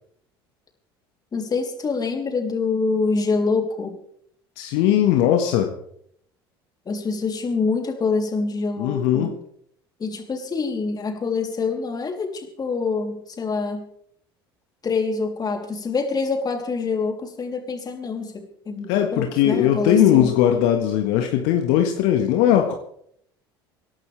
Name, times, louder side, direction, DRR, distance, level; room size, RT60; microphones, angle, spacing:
voice 1, 1.3-4.0 6.8-9.3 10.0-13.9 14.8-20.3, left 4 dB, 30° left, 3 dB, 3.3 m, -26 dB
voice 2, 4.6-5.7 8.8-9.4 18.9-22.7, left 10 dB, 65° left, 4 dB, 1.6 m, -19 dB
26.0 x 11.5 x 3.4 m, 0.68 s
hypercardioid pair, 70°, 13 cm